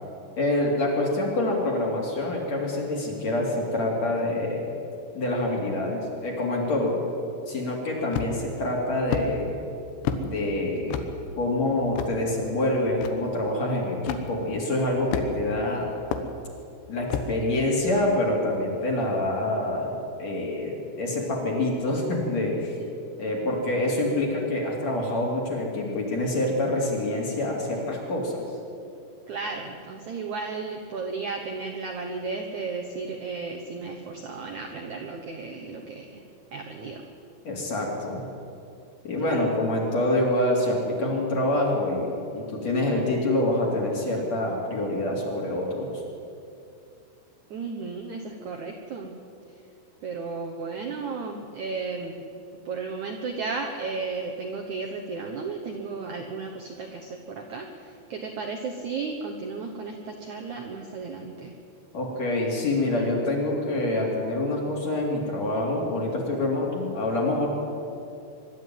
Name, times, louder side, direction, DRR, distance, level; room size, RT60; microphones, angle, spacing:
voice 1, 0.4-4.7 5.1-7.0 7.5-9.5 10.2-11.0 11.4-15.9 16.9-22.8 23.2-28.4 37.4-38.2 39.0-46.0 61.9-67.5, left 1 dB, 40° left, -2 dB, 4.1 m, -26 dB
sound 1, 8.1-8.5 9.1-9.3 10.1-10.3 10.9-11.1 12.0-12.1 13.0-13.1 14.1-14.2 15.1-15.5 16.1-16.3 17.1-17.3, left 7 dB, 85° left, 3.4 m, -28 dB
voice 2, 29.3-36.2 36.5-37.0 39.2-39.5 47.5-49.1 50.0-52.2 52.7-61.5, right 4 dB, 65° right, 2 dB, 2.0 m, -34 dB
23.5 x 12.0 x 9.3 m, 2.6 s
omnidirectional pair, 4.9 m